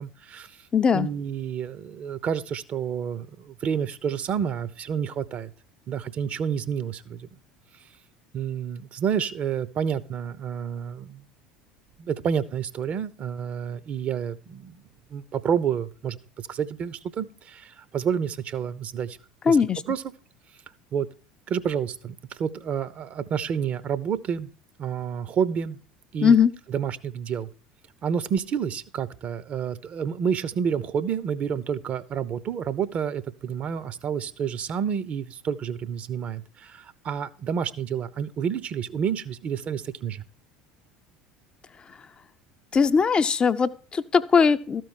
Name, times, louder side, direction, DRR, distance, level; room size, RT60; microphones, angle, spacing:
voice 1, 0.0-0.6 0.9-5.5 5.9-7.3 8.3-11.2 12.0-14.8 15.1-16.2 16.5-19.2 19.5-19.6 19.9-20.0 20.9-21.1 21.5-24.5 24.8-25.8 26.1-26.3 26.7-27.5 28.0-40.2, right 7 dB, 40° right, 16 dB, 0.7 m, -29 dB
voice 2, 0.7-1.1 19.4-19.8 26.2-26.5 41.9-42.1 42.7-44.8, left 6 dB, 25° left, 11 dB, 0.5 m, -20 dB
13.0 x 4.6 x 6.4 m, 0.38 s
figure-of-eight pair, 70°, 4 cm